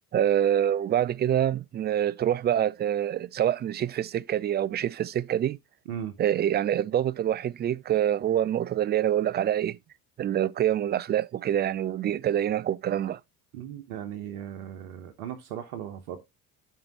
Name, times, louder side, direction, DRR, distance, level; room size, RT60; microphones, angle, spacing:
voice 1, 0.1-5.6 6.2-9.8 10.2-13.2, right 10 dB, 25° right, 0.4 m, -26 dB
voice 2, 13.5-16.2, right 10 dB, 75° right, 1.1 m, -37 dB
12.5 x 4.7 x 3.0 m
hypercardioid pair, 60°, 43 cm